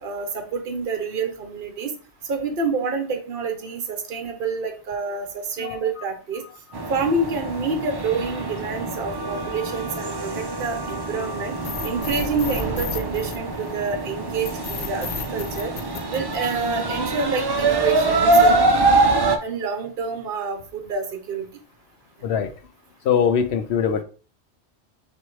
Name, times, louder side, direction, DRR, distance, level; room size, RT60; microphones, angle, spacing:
voice 1, 0.0-1.9 2.2-6.4 6.9-11.5 11.8-15.7 16.1-18.6 19.4-21.5, right 4 dB, 55° right, 6 dB, 1.0 m, -28 dB
sound 1, 6.7-19.4, right 2 dB, 40° right, 0.3 m, -24 dB
sound 2, 11.6-13.9 14.4-16.9, left 6 dB, 50° left, 0.6 m, -33 dB
voice 2, 23.0-24.0, left 7 dB, 75° left, 8 dB, 0.9 m, -21 dB
4.3 x 2.6 x 4.6 m, 0.37 s
omnidirectional pair, 1.1 m